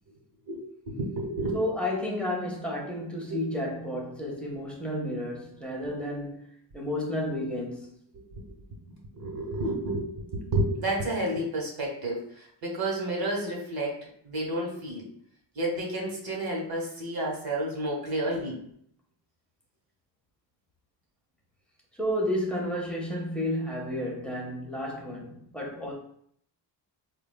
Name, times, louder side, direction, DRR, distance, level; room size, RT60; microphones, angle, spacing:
voice 1, 0.9-1.6 3.3-3.4 8.1-8.6 8.8-15.1 15.5-18.6, right 1 dB, 55° right, 1.2 m, -31 dB
voice 2, 1.5-6.5 6.7-8.0 22.0-25.9, left 1 dB, 5° left, 0.7 m, -31 dB
4.6 x 2.3 x 2.2 m
cardioid pair, 115°, 43 cm